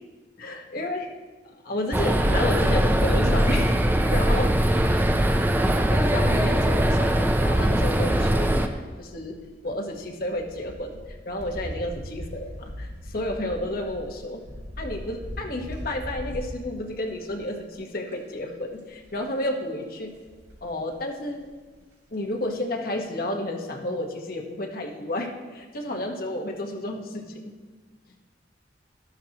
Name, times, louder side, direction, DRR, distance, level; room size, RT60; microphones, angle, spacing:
voice 1, 0.4-1.1 1.4-3.7 4.1-4.9 5.9-9.4 9.6-14.4 14.8-20.1 20.6-21.5 22.1-27.5, left 1 dB, 50° left, 2 dB, 1.2 m, -31 dB
sound 1, 1.9-8.7, right 1 dB, 10° right, 0.5 m, -21 dB
sound 2, 9.2-17.7 18.1-18.4 18.7-19.2 20.1-20.9 21.4-21.5 21.7-21.8, equal, 70° right, 3.1 m, -40 dB
12.0 x 12.0 x 2.9 m, 1.3 s
head